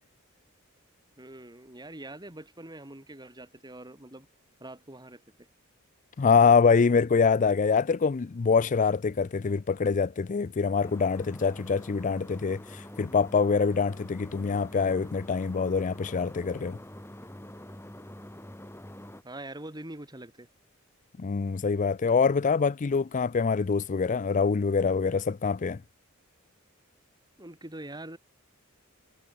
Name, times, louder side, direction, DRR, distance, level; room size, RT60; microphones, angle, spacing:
voice 1, 1.2-4.3 4.6-5.5 19.2-20.5 27.4-28.2, right 1 dB, 20° right, 4.1 m, -44 dB
voice 2, 6.2-16.8 21.2-25.8, left 5 dB, 40° left, 0.4 m, -25 dB
sound 1, 10.8-19.2, left 1 dB, 10° left, 3.4 m, -45 dB
head